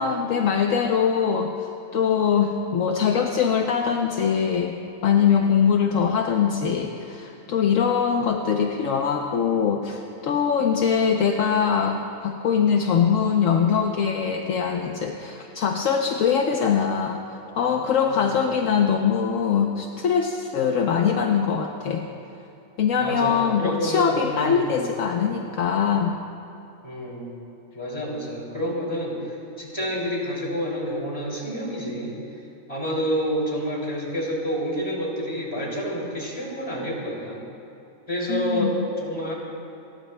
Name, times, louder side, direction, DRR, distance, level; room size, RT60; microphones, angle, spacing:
voice 1, 0.0-4.8 5.0-17.2 17.6-22.0 22.8-26.1 38.3-38.7, left 7 dB, 70° left, 2 dB, 1.1 m, -22 dB
voice 2, 23.0-24.8 26.8-27.3 27.7-32.2 32.7-37.4 38.1-39.3, equal, 25° left, -4 dB, 3.1 m, -28 dB
29.5 x 14.5 x 2.2 m, 2.8 s
omnidirectional pair, 1.5 m